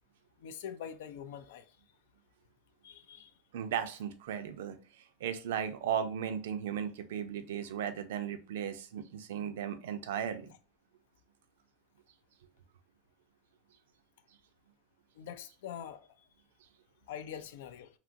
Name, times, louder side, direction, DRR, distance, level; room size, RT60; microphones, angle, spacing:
voice 1, 0.4-1.7 2.8-3.3 15.2-16.1 17.1-17.9, left 8 dB, 80° left, 0.3 m, -44 dB
voice 2, 3.5-10.5, right 8 dB, 90° right, 0.4 m, -36 dB
2.9 x 2.5 x 2.5 m
supercardioid pair, 145°, 0 cm